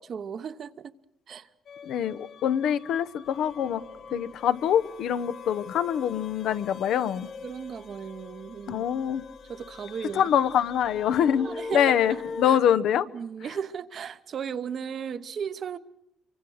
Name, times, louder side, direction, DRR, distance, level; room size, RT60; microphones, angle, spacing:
voice 1, 0.1-0.9 1.3-1.5 4.1-4.3 7.4-8.8 9.5-10.3 11.4-12.6 13.1-15.8, right 7 dB, 50° right, 0.9 m, -36 dB
sound 1, 1.7-12.4, left 4 dB, 60° left, 1.9 m, -42 dB
voice 2, 1.8-3.8 4.1-7.3 8.7-9.2 10.1-13.1, left 9 dB, 80° left, 0.8 m, -25 dB
26.0 x 24.0 x 6.4 m
cardioid pair, 125°, 0 cm